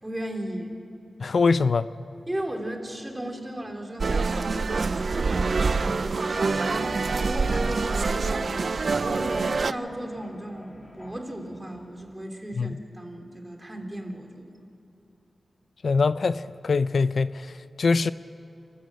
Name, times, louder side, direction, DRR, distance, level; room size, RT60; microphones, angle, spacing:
voice 1, 0.0-0.8 2.3-8.7 9.0-14.5, right 1 dB, 15° right, 3 dB, 3.2 m, -35 dB
voice 2, 1.2-1.9 12.6-12.8 15.8-18.1, left 4 dB, 70° left, 14 dB, 0.5 m, -23 dB
sound 1, 4.0-9.7, right 4 dB, 60° right, 0.5 m, -26 dB
sound 2, 6.0-12.1, left 1 dB, 25° left, 3.5 m, -44 dB
29.0 x 13.5 x 7.9 m, 2.9 s
wide cardioid pair, 75°, 0 cm